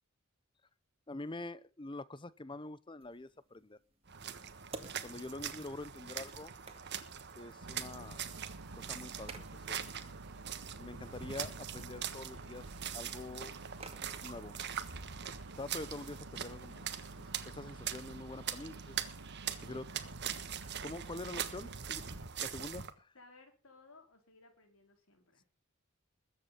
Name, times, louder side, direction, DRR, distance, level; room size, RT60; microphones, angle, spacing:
voice 1, 1.1-3.8 5.0-6.5 7.4-8.2 8.7-9.8 10.8-12.7 12.9-13.5 14.0-14.6 15.6-16.9 17.2-19.0 19.6-19.9 20.8-22.0 22.4-23.1, left 2 dB, 20° left, 0.7 m, -45 dB
sound 1, 3.0-20.6, right 3 dB, 25° right, 2.0 m, -58 dB
sound 2, 4.1-22.9, right 9 dB, 50° right, 1.4 m, -43 dB
Boat Water vehicle, 7.6-22.3, right 2 dB, 80° right, 1.4 m, -50 dB
voice 2, 23.1-25.4, left 3 dB, 70° left, 3.9 m, -60 dB
21.0 x 8.3 x 5.7 m
head